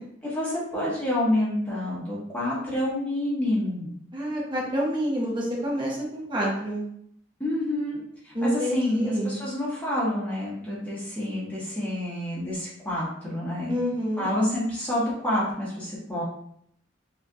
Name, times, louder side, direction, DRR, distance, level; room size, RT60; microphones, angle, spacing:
voice 1, 0.2-3.9 7.4-13.8 14.2-16.2, left 1 dB, 5° left, -8 dB, 1.3 m, -28 dB
voice 2, 4.1-6.8 8.3-9.4 13.7-14.3, equal, 25° right, -4 dB, 1.0 m, -28 dB
4.4 x 2.8 x 2.4 m, 0.69 s
head